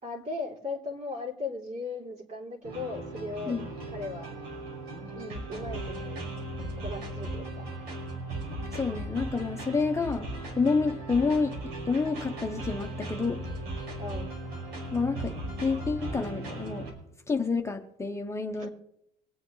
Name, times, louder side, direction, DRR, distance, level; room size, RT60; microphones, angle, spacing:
voice 1, 0.0-3.6 3.9-4.3 5.2-6.2 6.8-7.7 14.0-14.3 18.6-18.7, left 3 dB, 45° right, -1 dB, 3.6 m, -37 dB
sound 1, 2.6-16.9, right 2 dB, 80° right, 5.4 m, -37 dB
voice 2, 8.7-10.3 10.5-13.4 14.9-15.3 15.6-16.9 17.3-18.7, left 4 dB, 15° left, 3 dB, 0.9 m, -29 dB
24.5 x 8.4 x 3.2 m, 0.76 s
cardioid pair, 110°, 17 cm